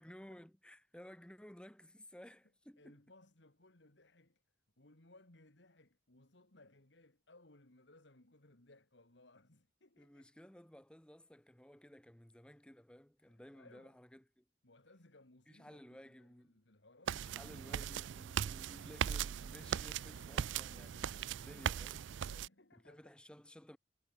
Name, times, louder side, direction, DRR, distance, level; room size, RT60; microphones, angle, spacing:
voice 1, 0.0-3.0 10.0-14.4 15.5-16.6 17.1-22.1 22.8-23.8, equal, 5° left, 0.9 m, -56 dB
voice 2, 2.8-4.4 4.8-10.3 13.2-14.0 14.6-17.4 22.2-23.1, left 2 dB, 65° left, 2.5 m, -64 dB
sound 1, 17.1-22.5, right 8 dB, 75° right, 0.4 m, -39 dB
head